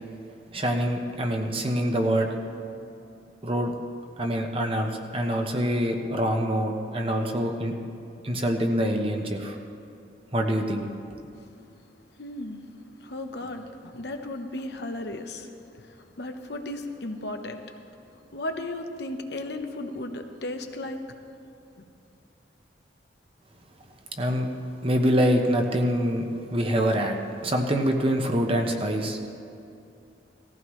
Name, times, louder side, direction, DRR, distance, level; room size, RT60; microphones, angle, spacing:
voice 1, 0.5-2.3 3.4-3.7 4.2-7.7 8.2-9.6 10.3-10.9 24.2-24.5 24.8-26.2 26.5-29.3, equal, 30° right, 3 dB, 1.1 m, -25 dB
voice 2, 12.2-12.6 13.0-15.5 16.2-17.6 18.3-21.0 21.8-21.9, left 1 dB, 65° left, 5 dB, 0.9 m, -35 dB
18.5 x 15.0 x 3.2 m, 2.7 s
head